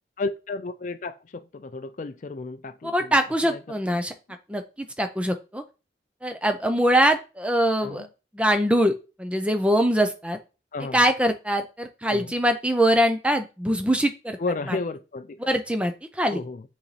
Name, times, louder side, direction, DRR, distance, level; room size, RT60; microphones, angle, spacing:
voice 1, 0.2-3.2 3.5-3.6 3.9-4.0 7.8-8.1 10.7-11.0 12.1-12.3 14.4-15.4 16.3-16.6, left 3 dB, 45° left, 0.4 m, -32 dB
voice 2, 2.8-4.1 4.5-5.6 6.2-8.1 8.3-8.9 9.2-10.4 10.9-14.4 14.7-14.8 15.5-16.4, equal, 5° right, 0.5 m, -23 dB
7.4 x 4.0 x 3.3 m
head